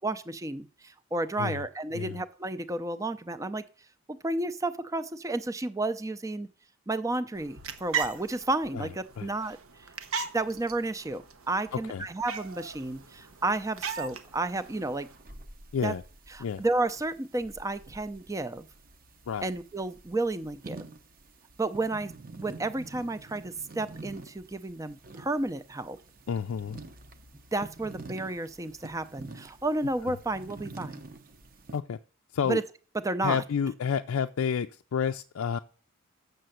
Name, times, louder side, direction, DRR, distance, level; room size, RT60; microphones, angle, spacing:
voice 1, 0.0-3.6 4.1-6.5 6.9-9.9 10.3-15.1 15.8-15.9 16.3-18.7 19.4-20.8 21.6-22.1 22.4-26.0 27.5-31.0 32.5-32.6 33.0-33.4, right 2 dB, 15° right, 12 dB, 0.5 m, -32 dB
sound 1, 7.3-15.2, right 6 dB, 80° right, 1.0 m, -39 dB
voice 2, 11.7-12.0 15.7-16.0 16.4-16.6 19.3-19.5 26.3-26.8 30.0-30.1 31.7-32.0 32.3-32.6 33.2-35.6, left 7 dB, 75° left, 7 dB, 0.4 m, -30 dB
sound 2, 12.2-31.8, right 2 dB, 40° right, 0.8 m, -48 dB
6.8 x 6.7 x 7.7 m, 0.40 s
head